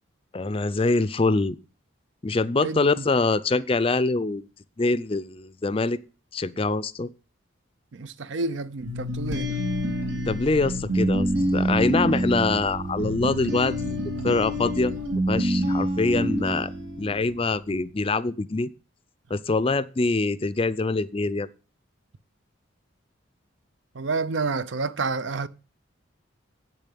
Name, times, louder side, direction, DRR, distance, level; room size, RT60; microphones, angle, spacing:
voice 1, 0.3-1.6 2.2-4.5 4.8-6.0 6.3-7.1 10.3-14.0 14.2-14.9 15.3-16.7 17.0-18.7 19.3-21.5, left 3 dB, 30° left, 0.5 m, -24 dB
voice 2, 2.6-3.1 7.9-9.6 23.9-25.5, right 3 dB, 70° right, 0.6 m, -29 dB
sound 1, 8.8-17.5, equal, 90° right, 3.0 m, -27 dB
8.3 x 7.0 x 8.3 m
head